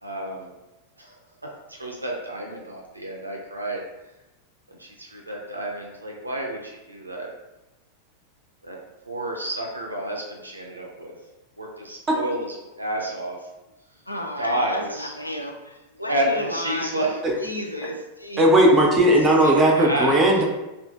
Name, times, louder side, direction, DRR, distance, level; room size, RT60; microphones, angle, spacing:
voice 1, 0.0-0.5 1.0-1.1 1.8-3.8 4.8-7.3 8.7-8.8 9.1-11.1 11.6-13.4 14.4-15.1 16.0-17.2 19.4-20.1, right 1 dB, 80° right, -1 dB, 0.3 m, -30 dB
voice 2, 14.1-18.8, left 1 dB, 85° left, 2 dB, 0.3 m, -33 dB
voice 3, 18.4-20.4, right 1 dB, 15° right, -1 dB, 0.4 m, -17 dB
2.5 x 2.4 x 2.3 m, 1.0 s
figure-of-eight pair, 90°, 0 cm